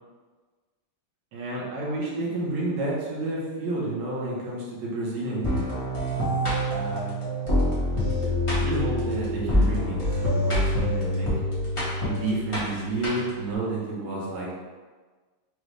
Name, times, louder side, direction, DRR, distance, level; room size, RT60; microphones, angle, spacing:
voice 1, 1.3-5.7 6.7-7.2 8.5-11.3 12.0-14.5, right 2 dB, 65° right, -5 dB, 1.5 m, -30 dB
sound 1, 5.4-13.5, left 1 dB, 25° left, 0.6 m, -26 dB
5.2 x 2.3 x 3.2 m, 1.4 s
omnidirectional pair, 2.3 m